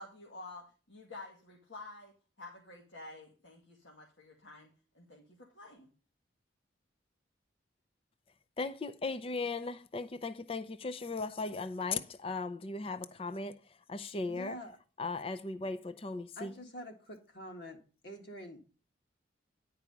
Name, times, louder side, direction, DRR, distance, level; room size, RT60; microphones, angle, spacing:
voice 1, 0.0-4.7 4.9-5.9, left 2 dB, 75° left, 2.0 m, -50 dB
voice 2, 8.6-13.6 13.9-14.6 15.0-16.5, left 3 dB, 30° left, 0.5 m, -37 dB
voice 3, 14.3-14.8 16.3-17.8 18.0-18.6, equal, 60° left, 1.8 m, -46 dB
10.5 x 4.8 x 7.0 m
head